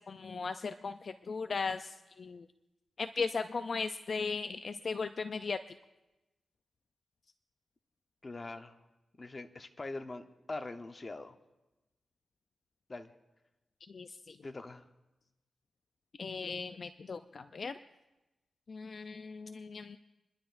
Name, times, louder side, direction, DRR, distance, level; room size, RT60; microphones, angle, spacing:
voice 1, 0.0-2.5 3.0-5.6 13.9-14.4 16.2-17.8 18.7-20.0, left 4 dB, 55° left, 9 dB, 0.4 m, -37 dB
voice 2, 8.2-8.8 9.2-11.4 12.9-13.1 14.4-14.9, left 2 dB, 35° left, 7 dB, 0.9 m, -43 dB
28.5 x 11.5 x 2.5 m, 1.0 s
cardioid pair, 85°, 0 cm